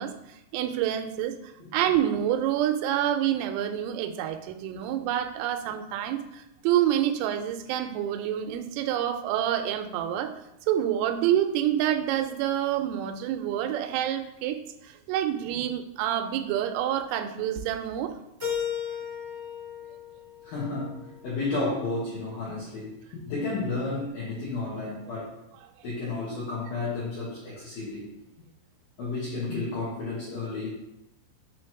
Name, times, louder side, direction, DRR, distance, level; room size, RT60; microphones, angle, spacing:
voice 1, 0.0-10.3 10.7-14.6 14.8-18.1, right 11 dB, 85° right, 8 dB, 3.2 m, -27 dB
Keyboard (musical), 18.4-21.3, left 8 dB, 65° right, 0.6 m, -35 dB
voice 2, 20.4-25.3 25.8-28.1 29.0-30.7, left 3 dB, 75° left, -7 dB, 2.0 m, -32 dB
7.7 x 3.0 x 4.5 m, 0.84 s
omnidirectional pair, 5.8 m